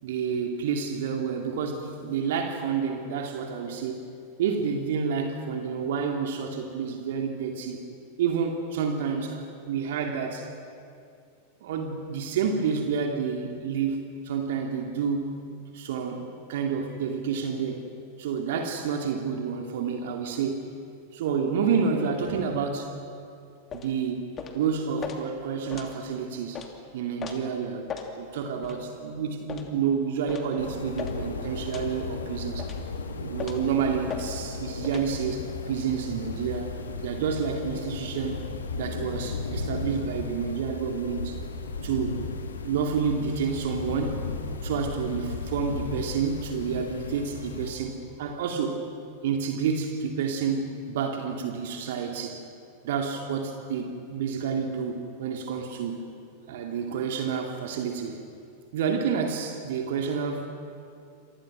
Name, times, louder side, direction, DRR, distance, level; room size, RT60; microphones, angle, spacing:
voice 1, 0.0-4.0 4.4-7.8 8.2-10.5 11.6-14.0 14.2-15.3 15.6-17.8 18.2-20.7 21.1-22.9 23.7-26.6 26.9-27.9 28.2-32.7 33.2-36.7 37.0-38.4 38.7-41.4 41.8-42.2 42.6-44.2 44.6-48.8 49.2-52.4 52.8-56.1 56.5-58.2 58.7-60.5, right 6 dB, 55° right, 3 dB, 2.4 m, -29 dB
sound 1, 23.7-23.9 24.4-24.6 25.0-25.2 25.7-25.9 26.5-26.7 27.2-27.4 27.9-28.1 28.6-28.8 29.5-29.7 30.3-30.5 31.0-31.2 31.7-31.9 32.6-32.8 33.4-33.7 34.1-34.3 34.8-35.1, left 7 dB, 25° left, 2.9 m, -37 dB
sound 2, 30.6-47.7, left 4 dB, 70° left, 2.2 m, -35 dB
29.0 x 27.5 x 6.2 m, 2.5 s
figure-of-eight pair, 90°, 0 cm